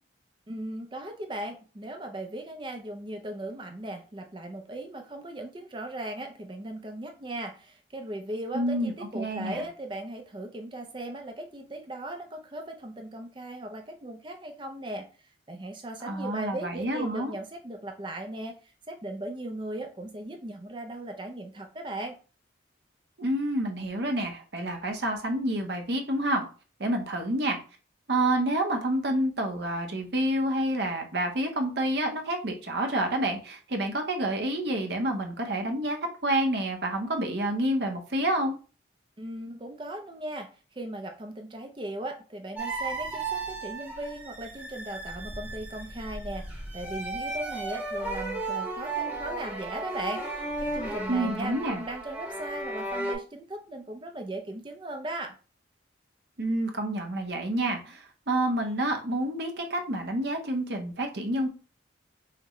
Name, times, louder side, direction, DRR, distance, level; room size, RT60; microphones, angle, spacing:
voice 1, 0.5-15.1 15.5-18.5 18.9-22.2 39.2-40.5 40.8-55.3, right 1 dB, 25° right, 4 dB, 0.5 m, -38 dB
voice 2, 8.5-9.6 16.0-17.3 23.2-26.5 26.8-27.6 28.1-36.0 36.2-38.6 51.1-51.8 56.4-61.5, right 1 dB, 60° right, 4 dB, 0.8 m, -28 dB
sound 1, 42.5-53.1, right 2 dB, 10° right, 0.9 m, -35 dB
5.7 x 2.2 x 3.0 m, 0.35 s
head